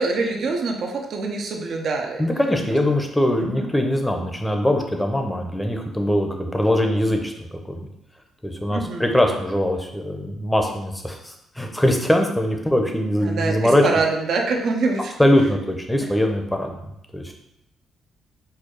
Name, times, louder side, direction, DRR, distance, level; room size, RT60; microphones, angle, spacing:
voice 1, 0.0-2.2 3.4-3.7 8.7-9.1 13.2-15.1, right 3 dB, 65° right, 2 dB, 0.7 m, -25 dB
voice 2, 2.2-7.9 8.4-13.9 15.2-16.9 17.1-17.3, left 1 dB, 5° left, 3 dB, 0.7 m, -22 dB
4.6 x 2.3 x 4.6 m, 0.82 s
cardioid pair, 90°, 0 cm